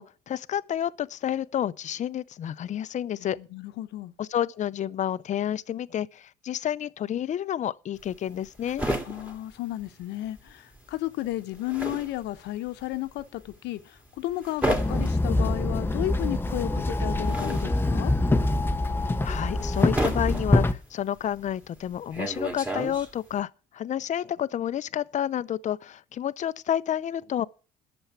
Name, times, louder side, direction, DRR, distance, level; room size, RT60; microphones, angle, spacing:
voice 1, 0.0-3.4 4.2-8.9 19.2-27.5, left 10 dB, 45° left, 0.6 m, -30 dB
voice 2, 3.2-4.1 9.0-18.1, left 15 dB, 85° left, 1.0 m, -33 dB
sound 1, 8.0-10.5 10.8-23.4, right 1 dB, 10° right, 2.3 m, -33 dB
Walk footsteps / Chatter / Hiss, 14.7-20.7, left 2 dB, 15° left, 0.8 m, -25 dB
11.5 x 7.1 x 8.3 m
cardioid pair, 110°, 17 cm